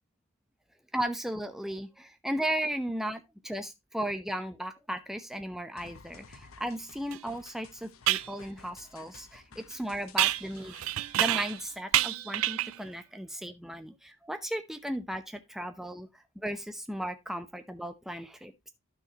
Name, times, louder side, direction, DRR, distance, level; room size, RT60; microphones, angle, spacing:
voice 1, 0.9-10.8 11.2-16.1 16.4-18.7, right 1 dB, ahead, 0.8 m, -36 dB
sound 1, 5.8-11.8, left 5 dB, 75° left, 1.0 m, -54 dB
sound 2, 7.1-7.2 8.1-8.3 10.2-11.6 11.9-12.8, right 14 dB, 70° right, 0.4 m, -28 dB
12.0 x 6.4 x 2.9 m
head